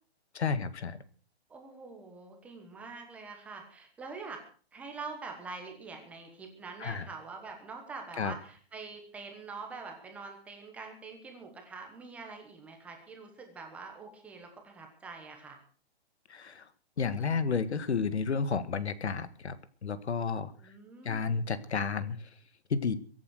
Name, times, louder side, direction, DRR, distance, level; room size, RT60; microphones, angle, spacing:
voice 1, 0.3-1.0 6.8-7.1 8.2-8.3 16.3-16.7 17.0-20.7 21.0-22.3 22.7-22.9, left 5 dB, 85° left, 14 dB, 2.0 m, -31 dB
voice 2, 1.5-4.4 4.7-15.6 20.6-21.4, right 4 dB, 5° right, 3 dB, 1.3 m, -45 dB
23.0 x 8.6 x 6.5 m, 0.43 s
hypercardioid pair, 175°, 32 cm